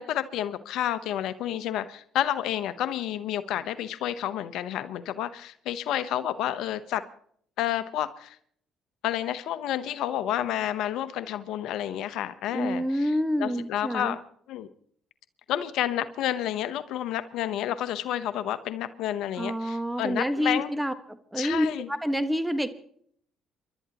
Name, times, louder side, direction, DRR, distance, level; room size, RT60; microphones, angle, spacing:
voice 1, 0.0-7.0 7.6-8.4 9.0-14.2 14.5-14.7 15.5-20.7 21.4-21.9, left 11 dB, 75° left, 13 dB, 0.9 m, -30 dB
voice 2, 12.5-14.2 19.4-22.7, equal, 5° right, 9 dB, 1.5 m, -28 dB
30.0 x 12.0 x 3.0 m, 0.62 s
supercardioid pair, 65°, 0 cm